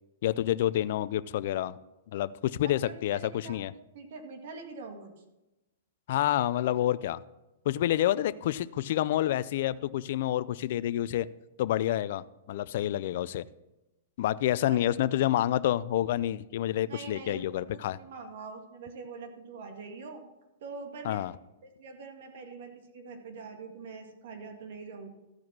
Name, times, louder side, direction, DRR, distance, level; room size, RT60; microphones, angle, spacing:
voice 1, 0.2-1.8 2.1-3.7 6.1-7.2 7.7-11.3 11.6-13.4 14.2-18.0 21.0-21.3, left 13 dB, 55° left, 15 dB, 0.4 m, -28 dB
voice 2, 2.6-5.1 14.7-14.8 16.9-20.2 20.6-21.3 21.6-25.1, right 4 dB, 60° right, 5 dB, 1.9 m, -44 dB
14.0 x 4.8 x 6.1 m, 1.0 s
hypercardioid pair, 155°, 0 cm